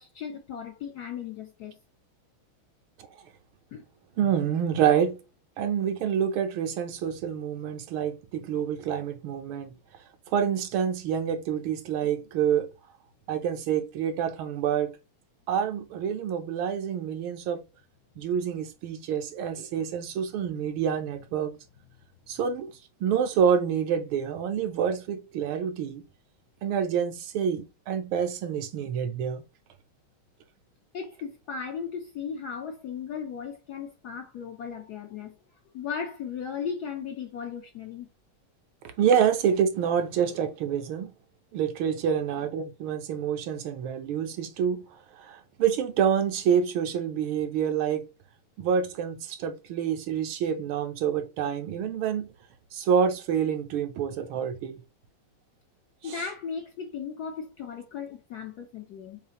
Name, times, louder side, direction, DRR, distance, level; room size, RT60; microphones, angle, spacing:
voice 1, 0.0-1.8 3.7-3.8 30.9-35.3 35.7-38.1 56.0-59.2, left 6 dB, 70° left, 0.9 m, -36 dB
voice 2, 4.2-5.2 5.6-9.7 10.3-12.7 13.3-14.9 15.5-17.6 18.2-21.5 22.3-22.7 23.0-26.0 26.6-29.4 39.0-41.1 41.5-48.0 48.6-52.3 52.7-54.8 56.0-56.2, right 8 dB, 75° right, 1.5 m, -27 dB
6.7 x 2.5 x 2.9 m
omnidirectional pair, 2.3 m